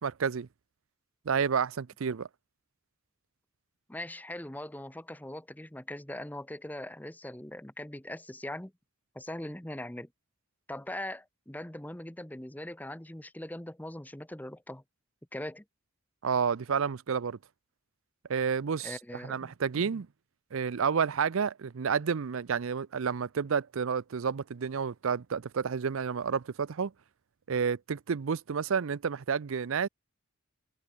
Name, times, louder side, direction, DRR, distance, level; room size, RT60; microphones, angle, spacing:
voice 1, 0.0-0.5 1.3-2.3 16.2-17.4 18.3-19.0 19.2-20.1 20.5-26.9 27.5-29.9, right 6 dB, 70° right, 0.5 m, -30 dB
voice 2, 3.9-8.7 9.1-10.1 10.7-14.8 15.3-15.6 18.8-19.5 19.9-20.0, left 1 dB, 10° left, 0.8 m, -41 dB
head